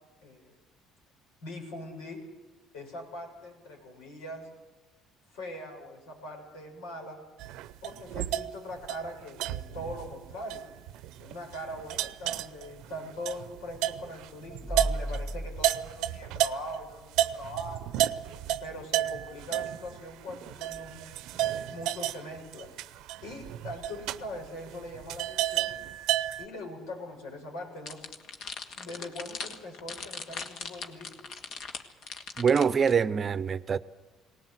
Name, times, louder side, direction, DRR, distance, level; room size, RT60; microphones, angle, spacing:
voice 1, 1.4-2.2 2.7-4.5 5.3-7.2 7.8-10.6 11.2-17.8 18.6-22.7 23.2-25.7 26.4-28.0 28.7-31.2, left 1 dB, 90° left, 6.9 m, -41 dB
sound 1, 7.4-16.8 17.1-26.5, right 13 dB, 80° right, 0.7 m, -32 dB
sound 2, 11.8-13.0 14.5-17.1 17.6-17.7 20.7-20.9, right 1 dB, 5° left, 1.0 m, -36 dB
sound 3, 27.9-32.9, left 5 dB, 60° left, 1.9 m, -39 dB
voice 2, 32.4-33.8, right 6 dB, 35° right, 0.7 m, -24 dB
19.0 x 19.0 x 8.1 m
cardioid pair, 100°, 0 cm